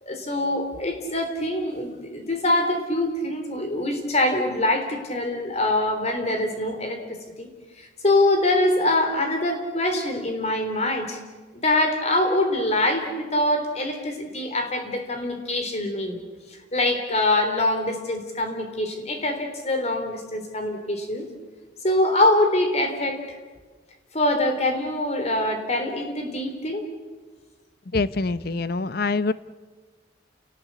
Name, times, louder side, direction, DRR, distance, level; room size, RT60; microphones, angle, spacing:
voice 1, 0.0-7.5 7.8-11.2 11.5-16.2 16.5-21.3 21.8-23.4 24.1-26.8, left 1 dB, 35° left, 6 dB, 3.6 m, -24 dB
voice 2, 27.9-29.3, left 3 dB, 50° left, 15 dB, 0.7 m, -25 dB
30.0 x 18.5 x 8.4 m, 1.4 s
head